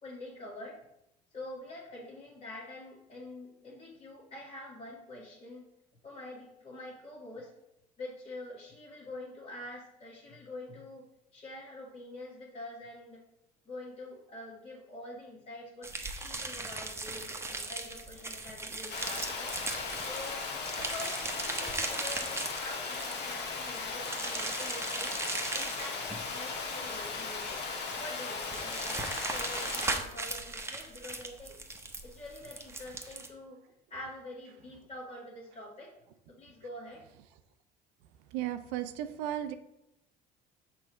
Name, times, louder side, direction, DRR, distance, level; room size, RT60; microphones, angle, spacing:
voice 1, 0.0-0.8 1.3-5.6 6.0-7.5 8.0-11.1 11.3-13.2 13.7-19.5 20.1-25.1 25.5-27.5 28.0-31.6 32.0-33.6 33.9-35.9 36.3-37.0, left 1 dB, 40° left, -7 dB, 1.8 m, -46 dB
sound 1, 15.8-33.3, right 2 dB, 15° right, 0.9 m, -38 dB
Water, 18.9-30.0, left 4 dB, 55° left, 1.2 m, -37 dB
voice 2, 38.3-39.5, right 12 dB, 75° right, 10 dB, 0.5 m, -35 dB
6.1 x 3.2 x 5.0 m, 0.84 s
hypercardioid pair, 65°, 20 cm